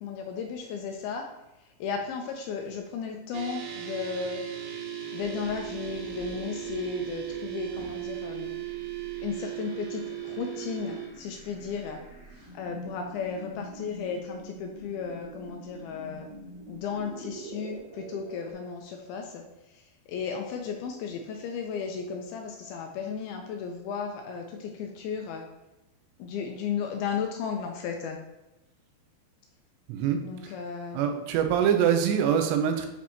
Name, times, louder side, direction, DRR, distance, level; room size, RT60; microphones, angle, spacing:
voice 1, 0.0-1.3 1.8-4.4 5.1-8.5 9.2-12.0 12.5-16.3 16.7-19.4 19.7-19.8 20.1-25.4 26.2-28.2 30.2-31.0, left 6 dB, 80° left, 2 dB, 2.3 m, -34 dB
sound 1, 3.3-11.1, right 11 dB, 75° right, 2.5 m, -37 dB
sound 2, 5.2-18.5, right 1 dB, 55° right, 2.9 m, -46 dB
voice 2, 29.9-30.5 30.9-32.9, right 8 dB, 90° right, 6 dB, 2.9 m, -24 dB
8.4 x 4.3 x 2.8 m, 0.97 s
omnidirectional pair, 4.8 m